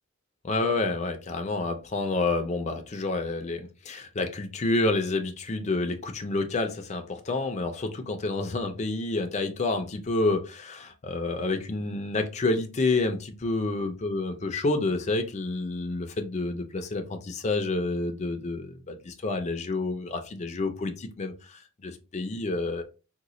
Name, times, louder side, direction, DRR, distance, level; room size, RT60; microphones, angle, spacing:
voice 1, 0.4-22.8, left 2 dB, 30° left, 0.5 m, -29 dB
3.8 x 2.2 x 3.0 m
head